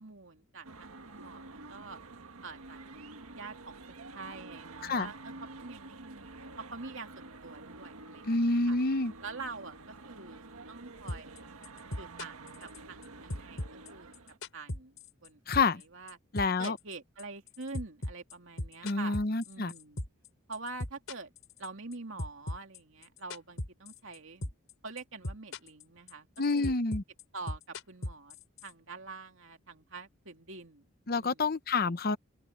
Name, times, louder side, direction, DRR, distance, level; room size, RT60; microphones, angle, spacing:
voice 1, 0.0-2.0 2.4-2.8 3.3-8.8 9.2-11.5 12.0-14.2 14.5-16.2 16.6-19.2 19.4-20.0 20.5-21.3 21.6-24.5 24.8-26.7 27.3-28.4 28.6-30.9 31.2-31.5, right 3 dB, 60° right, 2.8 m, -46 dB
sound 1, 0.6-14.4, right 3 dB, 85° right, 1.6 m, -49 dB
voice 2, 8.3-9.1 15.5-15.8 16.3-16.8 18.8-19.7 26.4-27.0 31.1-32.2, left 3 dB, 45° left, 0.8 m, -28 dB
sound 2, 11.1-11.4 11.6-13.0 13.3-15.3 15.5-20.3 20.5-21.9 22.2-24.2 24.4-24.7 25.0-25.8 26.1-28.7, left 1 dB, 65° left, 3.8 m, -37 dB
open air
head